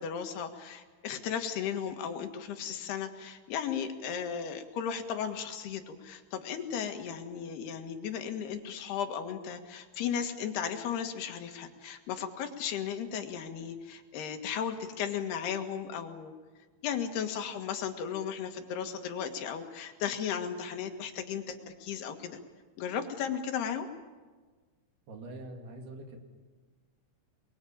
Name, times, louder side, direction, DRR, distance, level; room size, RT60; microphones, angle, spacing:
voice 1, 0.0-16.3 16.8-22.4 22.8-23.9, left 8 dB, 85° left, 6 dB, 3.8 m, -35 dB
voice 2, 25.1-26.2, right 2 dB, 75° right, 3 dB, 4.8 m, -44 dB
28.5 x 22.0 x 8.8 m, 1.4 s
omnidirectional pair, 4.5 m